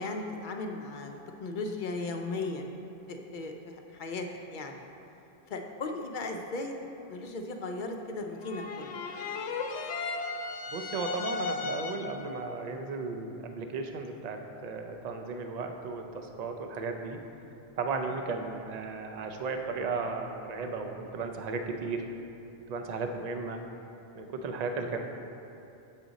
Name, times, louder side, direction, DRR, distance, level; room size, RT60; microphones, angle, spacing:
voice 1, 0.0-2.8 3.1-4.9 5.5-6.7 7.1-9.0 23.1-23.2, left 3 dB, 60° left, 3 dB, 0.6 m, -37 dB
sound 1, 8.4-12.3, left 4 dB, 85° left, 0.9 m, -35 dB
voice 2, 10.7-17.2 17.8-22.1 22.7-23.6 24.2-25.0, right 4 dB, 50° right, 4 dB, 0.5 m, -35 dB
7.4 x 5.0 x 4.0 m, 2.7 s
omnidirectional pair, 1.1 m